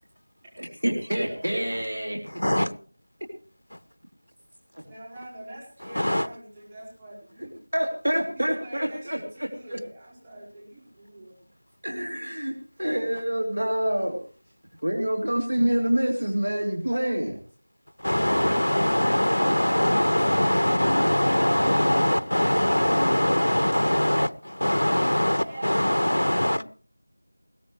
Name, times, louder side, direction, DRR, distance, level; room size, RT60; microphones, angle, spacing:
voice 1, 0.6-2.2 4.7-4.8 7.7-9.8 11.8-12.5 12.8-14.2 14.8-17.4 20.3-20.4, right 1 dB, 75° right, 1 dB, 3.3 m, -27 dB
voice 2, 1.2-2.0 4.8-7.5 8.3-11.4 25.3-26.6, right 1 dB, 10° right, -8 dB, 5.0 m, -44 dB
voice 3, 2.3-2.7 6.0-6.3 18.0-26.6, left 1 dB, 80° left, 15 dB, 1.0 m, -22 dB
21.0 x 16.5 x 3.3 m, 0.39 s
figure-of-eight pair, 175°, 0 cm